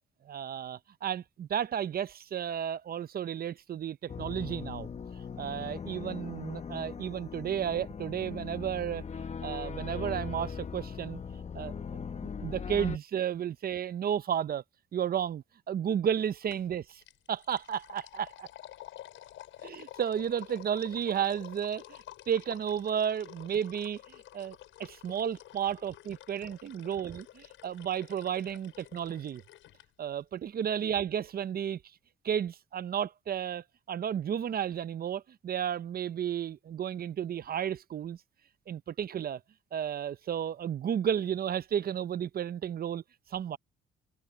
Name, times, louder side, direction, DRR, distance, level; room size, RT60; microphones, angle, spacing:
voice 1, 0.2-4.9 5.4-11.2 11.5-14.6 14.9-17.0 17.3-18.5 19.6-24.0 24.3-29.4 30.0-31.8 32.2-38.2 38.7-39.4 39.7-43.0 43.3-43.6, right 9 dB, 50° right, 0.7 m, -33 dB
sound 1, 4.1-13.0, left 6 dB, 35° left, 1.0 m, -39 dB
sound 2, 16.5-16.7 17.0-29.9, left 13 dB, 85° left, 6.5 m, -50 dB
cardioid pair, 90°, 20 cm